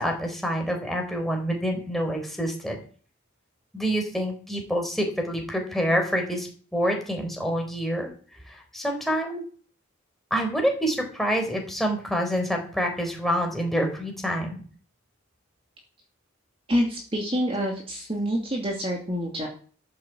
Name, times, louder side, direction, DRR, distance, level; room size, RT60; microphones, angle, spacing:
voice 1, 0.0-2.8 3.7-8.1 8.5-9.4 10.3-14.5, equal, ahead, 1 dB, 4.1 m, -27 dB
voice 2, 16.7-19.5, equal, 30° right, 0 dB, 2.5 m, -27 dB
13.5 x 8.6 x 7.7 m, 0.43 s
head